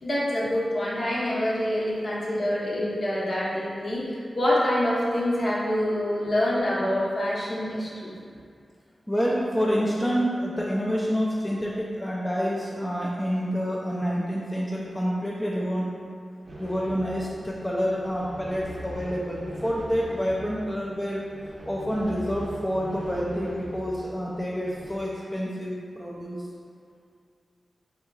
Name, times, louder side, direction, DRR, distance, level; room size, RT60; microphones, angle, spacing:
voice 1, 0.0-8.1, left 1 dB, 55° left, -7 dB, 0.9 m, -26 dB
voice 2, 9.1-16.1 16.6-21.2 21.7-26.4, equal, 15° left, -5 dB, 0.4 m, -28 dB
sound 1, 16.4-25.0, equal, 70° right, 0.6 m, -41 dB
3.7 x 2.8 x 2.3 m, 2.2 s
cardioid pair, 65°, 0 cm